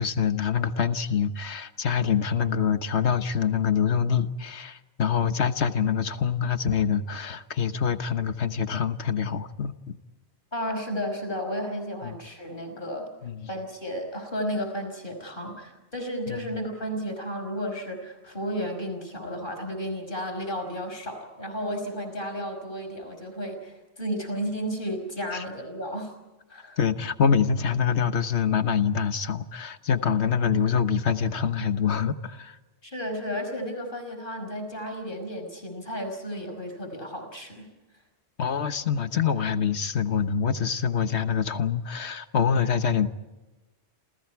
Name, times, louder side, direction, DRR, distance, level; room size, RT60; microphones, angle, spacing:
voice 1, 0.0-10.0 12.0-12.1 13.2-13.4 16.3-16.4 25.3-25.4 26.8-32.6 38.4-43.1, left 7 dB, 85° left, 10 dB, 1.5 m, -25 dB
voice 2, 10.5-13.1 13.5-26.1 26.5-26.8 32.8-37.7, equal, 50° left, 5 dB, 5.6 m, -33 dB
29.0 x 28.5 x 4.7 m, 1.1 s
omnidirectional pair, 1.1 m